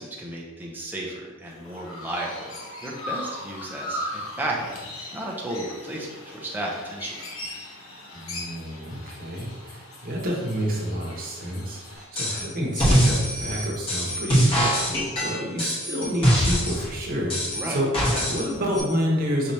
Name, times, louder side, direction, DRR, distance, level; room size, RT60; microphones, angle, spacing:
voice 1, 0.0-2.6 2.8-4.8 5.1-7.2 17.6-17.8 18.1-18.3, right 1 dB, 10° right, -3 dB, 0.6 m, -33 dB
Chirp tweet, 1.5-12.0, left 1 dB, 70° left, 0.9 m, -38 dB
voice 2, 8.1-17.9 18.3-19.5, equal, 45° right, -2 dB, 1.0 m, -29 dB
sound 1, 12.2-12.5 12.7-16.9 17.3-18.5 18.7-18.8, equal, 25° left, 1.3 m, -22 dB
5.6 x 3.1 x 2.8 m, 1.3 s
head